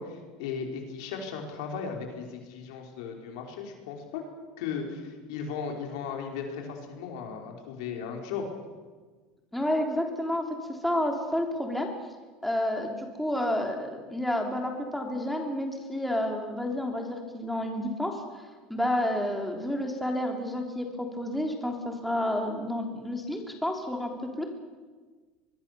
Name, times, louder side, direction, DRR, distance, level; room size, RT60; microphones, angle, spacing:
voice 1, 0.0-4.2 4.6-8.5, left 6 dB, 80° left, 2 dB, 5.1 m, -36 dB
voice 2, 9.5-11.9 12.4-18.2 18.7-24.4, left 1 dB, ahead, 2 dB, 3.3 m, -30 dB
23.5 x 22.5 x 6.9 m, 1.4 s
supercardioid pair, 140°, 3 cm